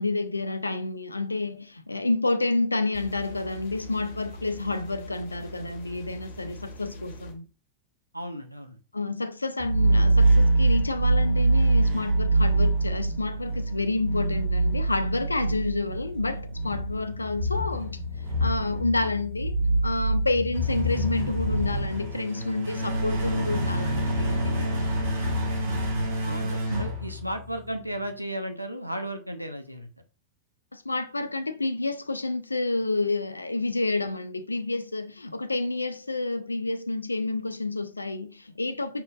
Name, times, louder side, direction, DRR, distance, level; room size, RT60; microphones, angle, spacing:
voice 1, 0.0-7.5 8.9-18.0 18.4-19.5 19.8-24.9 30.7-39.0, left 2 dB, 80° left, 0.4 m, -29 dB
sound 1, 2.9-7.3, equal, 50° left, 1.1 m, -43 dB
voice 2, 8.1-8.8 26.2-29.9, right 1 dB, 90° right, 0.7 m, -34 dB
sound 2, 9.6-27.7, right 2 dB, 60° right, 1.5 m, -25 dB
5.4 x 4.2 x 2.3 m
figure-of-eight pair, 90°, 0 cm